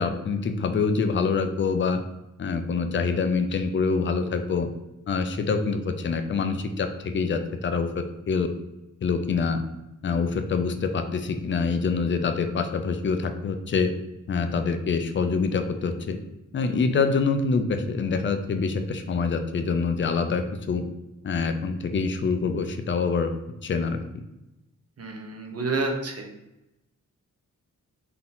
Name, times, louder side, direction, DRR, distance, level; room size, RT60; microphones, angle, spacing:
voice 1, 0.0-2.0 2.4-4.7 5.1-8.5 9.0-9.6 10.0-13.9 14.3-16.2 16.5-20.8 21.2-23.3 23.6-24.0, left 4 dB, 35° left, 7 dB, 0.4 m, -25 dB
voice 2, 25.0-26.3, right 3 dB, 50° right, 2 dB, 0.8 m, -29 dB
4.0 x 2.8 x 3.8 m, 0.93 s
wide cardioid pair, 140°, 32 cm